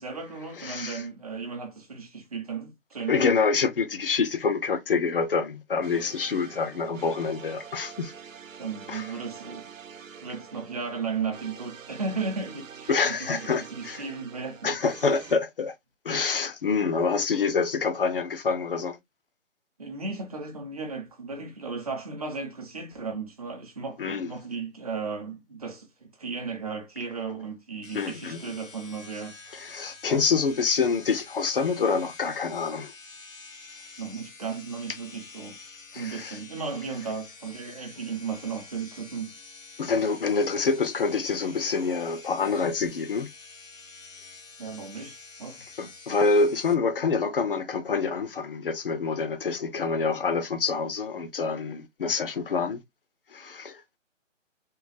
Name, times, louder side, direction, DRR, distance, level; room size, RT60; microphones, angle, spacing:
voice 1, 0.0-3.2 8.6-9.7 10.2-14.7 16.9-17.0 19.8-29.4 33.7-35.6 35.9-39.3 44.6-45.6, right 5 dB, 30° right, 0.8 m, -35 dB
voice 2, 0.6-1.0 3.1-8.1 8.9-9.1 12.9-14.0 14.6-15.7 16.0-19.0 24.0-24.3 27.9-28.4 29.5-32.9 35.9-36.4 39.8-43.3 45.8-52.8 53.3-53.8, left 4 dB, 45° left, 0.6 m, -26 dB
sound 1, 5.8-15.4, right 7 dB, 85° right, 0.9 m, -46 dB
sound 2, 27.8-46.7, left 3 dB, 85° left, 1.3 m, -48 dB
3.7 x 2.3 x 2.6 m
hypercardioid pair, 170°, 38 cm